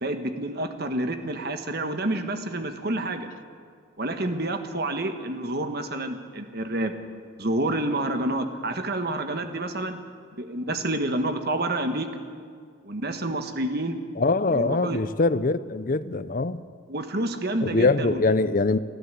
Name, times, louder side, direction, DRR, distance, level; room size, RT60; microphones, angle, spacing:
voice 1, 0.0-3.3 4.0-6.9 7.4-10.0 10.4-12.1 12.8-14.0 14.5-15.0 16.9-18.2, right 1 dB, 50° right, 7 dB, 1.4 m, -28 dB
voice 2, 14.2-16.6 17.6-18.8, left 3 dB, 40° left, 14 dB, 0.6 m, -23 dB
29.5 x 10.5 x 8.2 m, 2.1 s
head